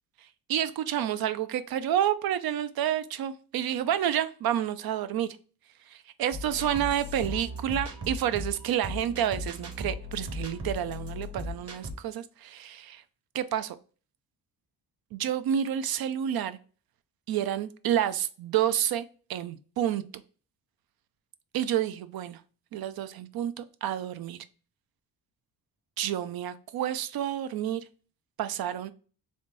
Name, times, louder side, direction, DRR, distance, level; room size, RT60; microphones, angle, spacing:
voice 1, 0.5-5.3 5.9-13.0 13.3-13.8 15.1-16.6 17.3-20.0 21.5-22.4 22.7-24.4 26.0-27.8 28.4-28.9, right 10 dB, 70° right, 0.5 m, -29 dB
sound 1, 6.3-11.9, left 1 dB, 40° right, 0.9 m, -37 dB
3.5 x 2.6 x 3.9 m
cardioid pair, 115°, 38 cm